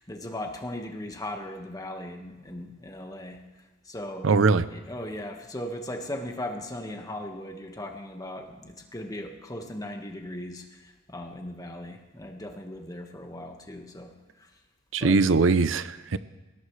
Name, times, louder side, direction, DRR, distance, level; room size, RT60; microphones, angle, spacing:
voice 1, 0.0-3.4 3.8-4.3 4.7-14.1 14.4-14.5 15.0-15.2, left 1 dB, 20° left, 3 dB, 1.6 m, -38 dB
voice 2, 4.2-4.6 14.9-16.2, right 4 dB, 75° right, 14 dB, 0.6 m, -21 dB
21.0 x 17.5 x 3.3 m, 1.2 s
head